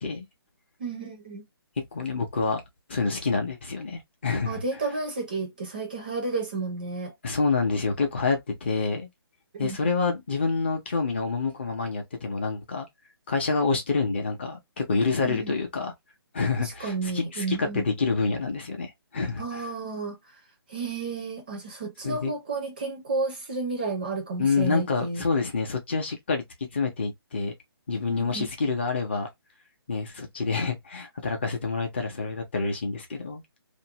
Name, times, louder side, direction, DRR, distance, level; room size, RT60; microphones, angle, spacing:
voice 1, 0.8-1.4 4.4-7.1 9.5-9.8 15.2-15.5 16.6-17.8 19.4-20.4 20.7-25.2 28.1-28.5, right 3 dB, 20° right, 0.5 m, -32 dB
voice 2, 1.9-2.6 2.9-4.6 7.2-9.1 9.6-12.9 13.3-15.9 16.3-19.6 22.0-22.3 24.4-26.4 26.7-27.5 27.9-29.3 29.9-33.4, left 4 dB, 25° left, 0.6 m, -27 dB
2.5 x 2.0 x 2.8 m
hypercardioid pair, 170°, 13 cm